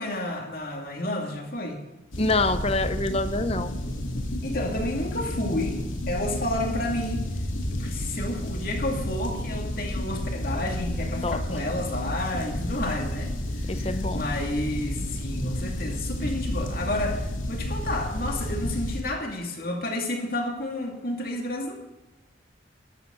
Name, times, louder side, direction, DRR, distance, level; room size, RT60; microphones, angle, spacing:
voice 1, 0.0-1.8 4.4-5.8 6.1-7.3 7.8-21.7, left 1 dB, 50° left, 2 dB, 2.6 m, -31 dB
sound 1, 2.1-19.0, left 1 dB, 90° left, 2.6 m, -31 dB
voice 2, 2.2-3.7 11.2-11.4 13.7-14.2, left 2 dB, 30° left, 10 dB, 0.8 m, -26 dB
13.5 x 13.0 x 4.0 m, 1.0 s
head